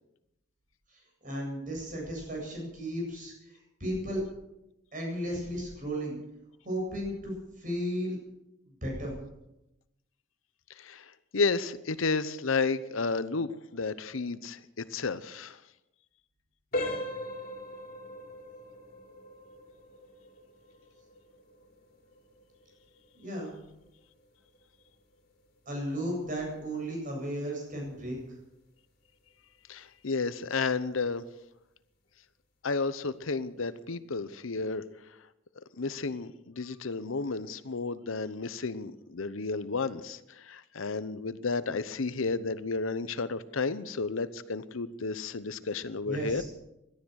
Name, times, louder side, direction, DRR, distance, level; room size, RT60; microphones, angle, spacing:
voice 1, 0.9-4.2 4.9-6.2 6.6-8.2 8.8-9.1 23.1-23.5 25.7-28.2 46.0-46.4, equal, 40° right, -1 dB, 8.0 m, -34 dB
voice 2, 10.7-15.6 29.7-31.2 32.6-34.8 35.6-46.4, left 4 dB, 90° left, 15 dB, 0.8 m, -32 dB
sound 1, 16.7-27.4 27.7-28.0 28.6-28.7 29.2-29.3, left 1 dB, 45° left, 3.5 m, -41 dB
17.5 x 12.5 x 6.4 m, 0.89 s
head